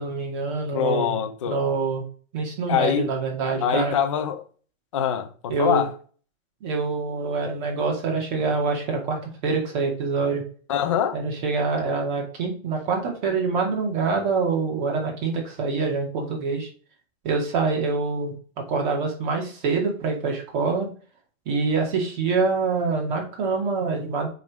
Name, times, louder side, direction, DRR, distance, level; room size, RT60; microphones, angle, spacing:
voice 1, 0.0-1.1 1.5-2.0 2.3-3.9 5.5-5.8 6.6-10.4 11.1-16.7 17.2-20.9 21.5-24.3, right 4 dB, 35° right, 2.4 m, -25 dB
voice 2, 0.7-1.6 2.7-3.1 3.6-4.4 4.9-5.9 10.7-11.2, left 8 dB, 25° left, 0.5 m, -24 dB
7.5 x 3.9 x 5.0 m
hypercardioid pair, 175°, 41 cm